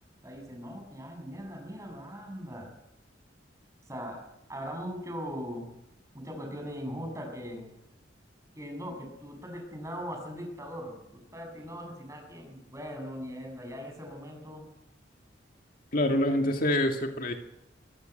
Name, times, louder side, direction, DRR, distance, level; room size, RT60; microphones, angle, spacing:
voice 1, 0.2-2.7 3.9-4.2 4.5-5.7 6.1-7.7 8.6-14.7, equal, 15° right, 3 dB, 7.2 m, -40 dB
voice 2, 15.9-17.4, left 1 dB, 50° left, 4 dB, 2.1 m, -26 dB
23.5 x 15.5 x 9.2 m, 0.86 s
head